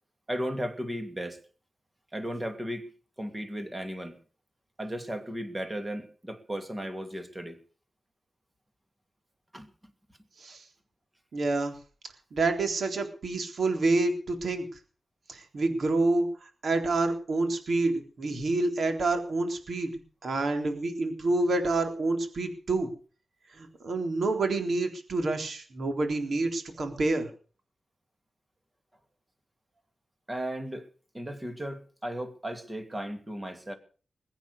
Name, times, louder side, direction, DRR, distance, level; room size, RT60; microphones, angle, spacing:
voice 1, 0.3-1.4 2.1-2.9 3.2-4.2 4.8-7.6 9.5-9.7 30.3-30.9 31.1-33.7, equal, 15° right, 2.6 m, -35 dB
voice 2, 11.3-11.7 12.3-14.7 15.3-16.3 16.6-19.9 20.2-22.9 23.6-27.3, right 2 dB, 60° right, 3.8 m, -28 dB
21.5 x 9.1 x 6.7 m
wide cardioid pair, 130°, 0 cm